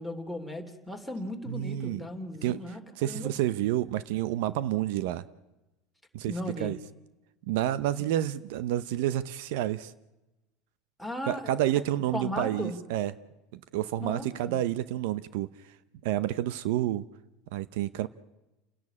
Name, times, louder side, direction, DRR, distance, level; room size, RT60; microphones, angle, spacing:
voice 1, 0.0-3.3 6.3-6.7 11.0-11.5 12.1-12.8 14.0-14.6, left 1 dB, ahead, 7 dB, 3.0 m, -36 dB
voice 2, 1.5-2.1 2.4-2.6 3.0-5.3 6.1-6.8 7.5-9.9 11.3-13.1 13.5-15.5 16.0-17.1 17.5-18.1, right 13 dB, 70° right, 16 dB, 0.7 m, -29 dB
30.0 x 11.0 x 8.6 m, 1.0 s
supercardioid pair, 120°, 0 cm